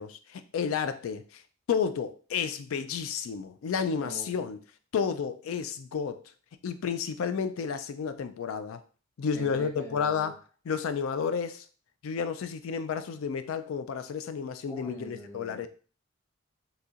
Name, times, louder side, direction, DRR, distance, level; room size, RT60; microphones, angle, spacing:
voice 1, 0.0-1.4 1.7-4.6 4.9-6.2 6.6-8.8 9.2-10.4 10.7-11.6 12.0-15.7, left 6 dB, 80° left, 10 dB, 0.4 m, -31 dB
voice 2, 4.0-4.5 9.3-10.4 14.7-15.7, right 1 dB, 15° left, -2 dB, 0.8 m, -44 dB
4.1 x 2.7 x 2.4 m, 0.39 s
head